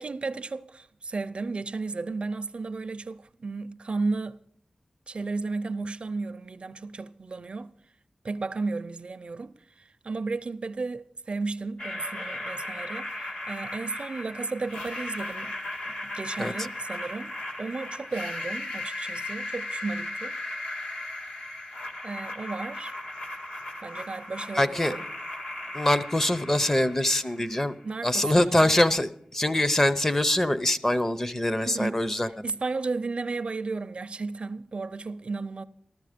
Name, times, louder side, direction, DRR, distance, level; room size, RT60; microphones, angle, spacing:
voice 1, 0.0-4.4 5.1-7.7 8.2-15.5 15.9-17.3 17.6-20.4 22.0-22.9 23.8-25.1 27.8-28.6 31.6-35.6, right 3 dB, 55° right, 0.4 m, -34 dB
sound 1, 11.8-27.7, left 2 dB, 85° left, 1.9 m, -37 dB
voice 2, 24.6-24.9 25.7-27.8 28.0-32.3, left 1 dB, 20° left, 0.6 m, -24 dB
14.0 x 13.5 x 5.0 m
wide cardioid pair, 105°, 2 cm